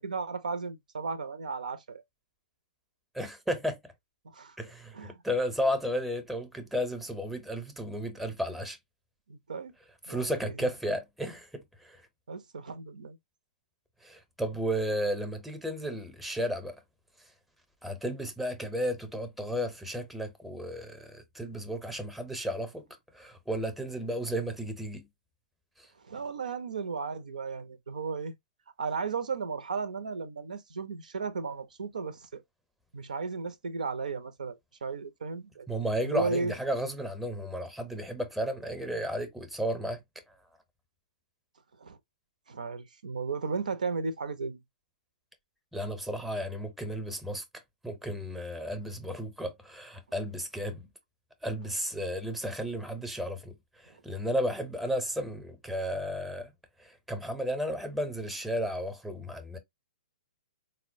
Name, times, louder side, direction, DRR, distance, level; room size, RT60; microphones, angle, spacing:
voice 1, 0.0-2.0 4.3-4.6 4.9-5.2 9.3-9.7 10.1-10.3 12.3-13.2 26.1-28.3 28.8-32.4 32.9-35.7 36.0-36.6 41.8-42.0 42.5-44.6, right 4 dB, 75° right, 0.5 m, -35 dB
voice 2, 3.1-3.9 4.6-8.8 10.1-12.0 14.0-16.8 17.8-22.8 23.1-25.1 25.8-25.9 35.7-40.0 45.7-47.4 47.8-50.9 51.4-56.5 56.8-59.6, equal, ahead, 0.7 m, -33 dB
4.1 x 2.1 x 2.6 m
hypercardioid pair, 125°, 4 cm